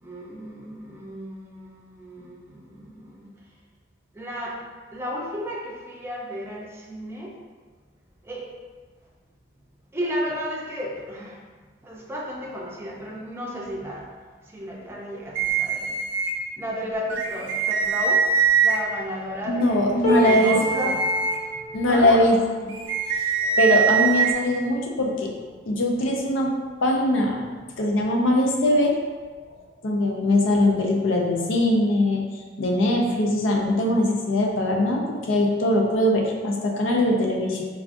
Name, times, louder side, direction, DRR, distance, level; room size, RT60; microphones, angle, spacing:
voice 1, 0.0-3.3 4.1-4.6 4.9-7.3 8.2-8.5 9.9-11.4 11.8-14.1 14.5-16.0 16.6-18.2 18.6-21.0 21.4-21.5 21.8-22.3, equal, 15° right, -3 dB, 0.5 m, -33 dB
sound 1, 15.3-16.3 17.1-18.8 20.1-21.4 22.7-24.3, right 6 dB, 90° right, 0.4 m, -23 dB
voice 2, 19.5-20.6 21.7-22.4 23.1-25.3 25.7-26.5 26.8-27.4 27.8-28.9 29.8-32.2 32.6-37.6, left 1 dB, 90° left, 0 dB, 0.5 m, -21 dB
sound 2, 20.0-26.2 26.8-27.0 27.3-28.0 29.0-29.1, right 1 dB, 40° left, 0.6 m, -32 dB
4.6 x 2.4 x 2.5 m, 1.4 s
head